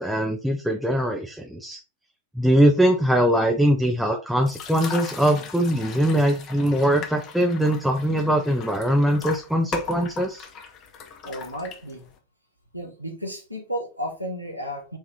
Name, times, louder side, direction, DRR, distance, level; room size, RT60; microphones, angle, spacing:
voice 1, 0.0-1.8 2.4-10.4, equal, ahead, 2 dB, 0.5 m, -21 dB
sound 1, 4.4-12.2, left 5 dB, 35° left, 0.8 m, -38 dB
voice 2, 11.2-12.1 12.7-15.0, equal, 90° right, 2 dB, 0.7 m, -33 dB
4.7 x 2.8 x 3.4 m, 0.33 s
figure-of-eight pair, 90°, 0 cm